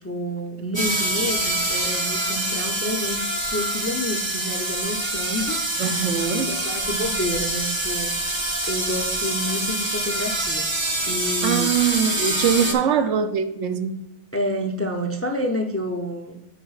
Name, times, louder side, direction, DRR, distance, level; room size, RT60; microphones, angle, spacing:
voice 1, 0.0-6.1 6.5-8.1 8.7-10.7 11.1-11.7 12.2-13.1 14.3-16.4, equal, 25° left, 0.3 m, -29 dB
sound 1, 0.7-12.7, right 1 dB, 25° right, 0.8 m, -25 dB
voice 2, 5.8-6.5 11.4-14.1, right 7 dB, 90° right, 1.0 m, -23 dB
10.5 x 5.0 x 2.4 m
omnidirectional pair, 1.2 m